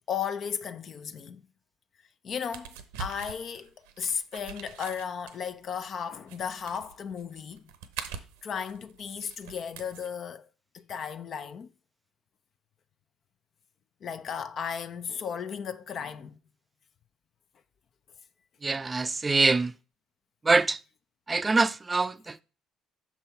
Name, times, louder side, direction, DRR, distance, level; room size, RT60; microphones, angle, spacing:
voice 1, 0.1-1.4 2.2-7.6 8.4-10.5 10.7-11.7 14.0-16.4, left 7 dB, 50° left, 0.5 m, -35 dB
sound 1, 2.5-10.1, right 7 dB, 80° right, 0.7 m, -43 dB
voice 2, 18.6-19.7 20.4-20.8 21.3-22.4, right 3 dB, 25° right, 0.4 m, -24 dB
6.0 x 5.4 x 4.4 m
hypercardioid pair, 55°, 0 cm